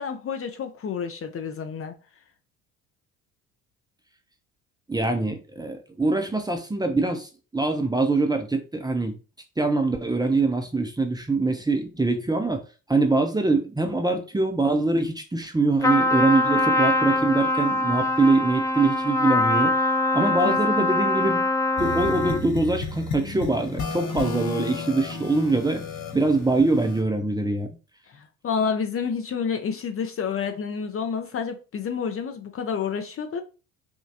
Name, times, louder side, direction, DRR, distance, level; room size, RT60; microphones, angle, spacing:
voice 1, 0.0-1.9 20.2-20.9 28.1-33.4, left 6 dB, 30° left, 0.8 m, -29 dB
voice 2, 4.9-9.1 9.6-12.6 12.9-19.7 20.1-21.5 21.8-25.8 26.1-27.7, right 3 dB, 10° right, 0.8 m, -23 dB
Trumpet, 15.8-22.5, left 2 dB, 10° left, 0.3 m, -23 dB
sound 1, 21.8-27.0, left 3 dB, 50° left, 1.3 m, -33 dB
5.4 x 2.4 x 2.8 m
hypercardioid pair, 60°, 42 cm